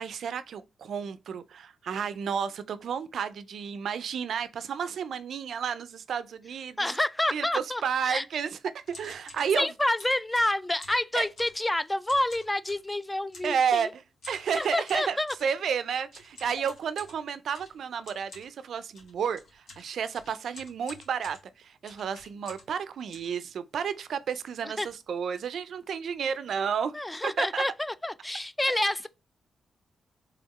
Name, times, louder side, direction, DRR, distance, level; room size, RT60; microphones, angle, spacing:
voice 1, 0.0-6.8 7.3-8.5 8.9-9.7 11.2-11.3 13.4-14.0 14.3-27.0 27.2-27.6, right 7 dB, 75° right, 0.4 m, -31 dB
voice 2, 6.8-8.2 9.5-13.9 14.6-15.3 24.6-24.9 26.9-29.1, left 1 dB, 15° left, 0.3 m, -28 dB
sound 1, 8.9-9.5 10.0-11.7 12.0-12.9 13.3-13.6 14.2-15.5 16.1-22.8 23.1-24.0 24.4-24.5 24.7-25.0 25.3-25.5 26.1-26.2 26.4-26.7, left 2 dB, 85° left, 1.5 m, -50 dB
3.5 x 3.4 x 3.0 m
cardioid pair, 75°, 0 cm